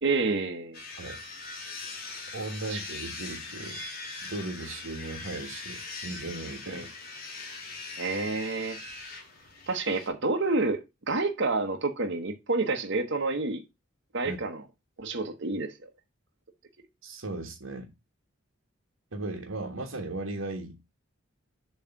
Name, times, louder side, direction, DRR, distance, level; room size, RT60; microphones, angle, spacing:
voice 1, 0.0-0.8 2.7-2.8 6.7-6.9 8.0-8.8 9.7-13.6 14.1-14.6 15.0-15.9, right 3 dB, 60° right, 1.0 m, -29 dB
sound 1, 0.7-10.1, left 3 dB, 50° left, 2.1 m, -41 dB
voice 2, 2.3-3.8 4.3-6.9 14.2-14.4 17.0-17.9 19.1-20.8, right 2 dB, 85° right, 1.4 m, -37 dB
7.3 x 3.2 x 5.7 m
head